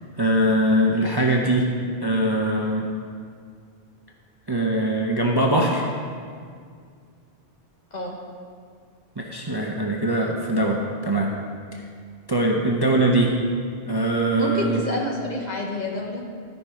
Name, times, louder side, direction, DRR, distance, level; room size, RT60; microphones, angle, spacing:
voice 1, 0.2-1.7 2.0-2.9 4.5-5.9 9.2-11.3 11.7-11.8 12.3-13.4 13.9-14.8, right 1 dB, 25° right, -1 dB, 0.6 m, -22 dB
voice 2, 14.4-16.4, left 2 dB, 45° left, -1 dB, 1.4 m, -28 dB
13.5 x 5.4 x 4.9 m, 2.1 s
omnidirectional pair, 1.1 m